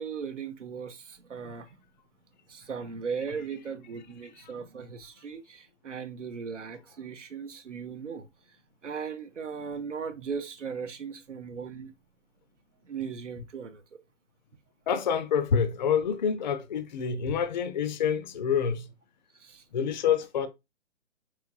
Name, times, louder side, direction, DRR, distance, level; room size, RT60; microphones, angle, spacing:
voice 1, 0.0-1.7 2.5-8.3 8.8-11.9 12.9-13.8 19.4-19.6, right 6 dB, 80° right, 0.7 m, -37 dB
voice 2, 14.9-18.9 19.7-20.5, left 7 dB, 40° left, 0.4 m, -27 dB
4.8 x 3.0 x 2.3 m
figure-of-eight pair, 125°, 36 cm